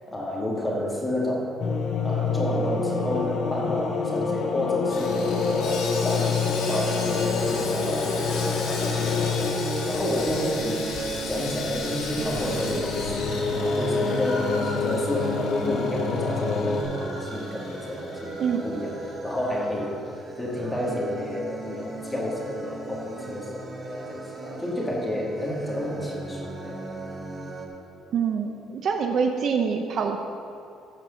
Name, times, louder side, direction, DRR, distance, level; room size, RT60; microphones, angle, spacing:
voice 1, 0.1-1.6 2.0-11.0 11.3-13.2 13.5-20.0 20.4-26.8, left 1 dB, 10° left, -3 dB, 1.9 m, -30 dB
sound 1, 1.6-16.8, left 4 dB, 50° left, 1.1 m, -27 dB
Sawing, 4.9-19.2 19.4-19.6 20.1-20.2, left 4 dB, 70° left, 2.1 m, -37 dB
sound 2, 8.3-27.7, right 2 dB, 25° right, 1.2 m, -38 dB
voice 2, 18.4-18.7 28.1-30.2, right 6 dB, 45° right, 4 dB, 0.7 m, -25 dB
14.0 x 4.7 x 6.8 m, 2.4 s
cardioid pair, 160°, 0 cm